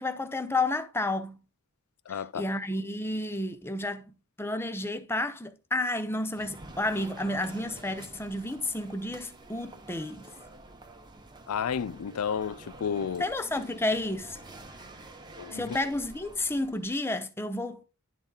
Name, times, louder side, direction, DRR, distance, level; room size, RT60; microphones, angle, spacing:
voice 1, 0.0-1.4 2.1-10.3 13.2-14.4 15.5-17.8, left 2 dB, 10° left, 0.6 m, -31 dB
voice 2, 2.1-2.5 11.5-13.3 15.4-15.8, left 7 dB, 80° left, 0.4 m, -32 dB
sound 1, 6.3-17.0, right 2 dB, 20° right, 0.9 m, -48 dB
11.0 x 4.0 x 3.8 m
head